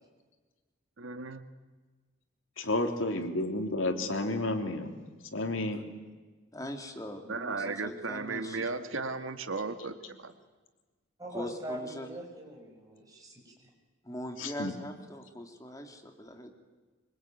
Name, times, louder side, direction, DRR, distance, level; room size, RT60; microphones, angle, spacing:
voice 1, 1.0-1.5 7.3-10.3, right 3 dB, 85° right, 8 dB, 1.9 m, -35 dB
voice 2, 2.6-4.9 5.3-5.9 14.4-14.7, left 2 dB, 85° left, 5 dB, 3.5 m, -31 dB
voice 3, 6.5-8.7 11.3-12.1 14.0-16.5, left 1 dB, 15° left, 5 dB, 2.5 m, -41 dB
voice 4, 11.2-13.7, right 1 dB, 20° right, 1 dB, 7.1 m, -42 dB
25.0 x 25.0 x 9.3 m, 1.3 s
head